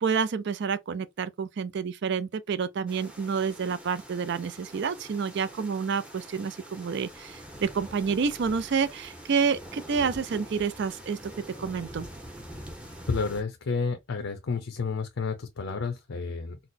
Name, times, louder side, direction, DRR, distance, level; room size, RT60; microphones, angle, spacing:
voice 1, 0.0-11.2 11.6-12.1, right 6 dB, 55° right, 0.4 m, -29 dB
sound 1, 2.9-13.4, right 1 dB, 5° right, 0.6 m, -45 dB
voice 2, 13.1-16.6, left 4 dB, 70° left, 0.5 m, -30 dB
4.0 x 2.0 x 2.6 m
head